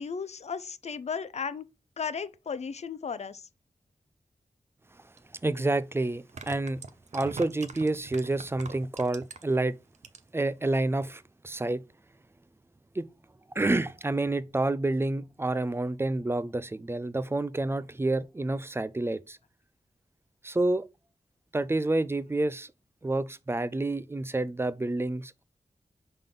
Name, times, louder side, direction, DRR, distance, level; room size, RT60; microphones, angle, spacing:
voice 1, 0.0-1.7 2.0-3.5, left 6 dB, 55° left, 0.5 m, -35 dB
sound 1, 5.2-5.3 6.2-9.6 9.9-10.4 10.8-10.9, right 4 dB, 60° right, 0.7 m, -42 dB
voice 2, 5.4-6.8 7.1-9.7 10.3-11.8 13.0-13.1 13.6-19.4 20.4-20.8 21.5-22.7 23.0-25.4, right 2 dB, 20° right, 0.4 m, -29 dB
5.3 x 3.6 x 5.8 m
wide cardioid pair, 105°, 13 cm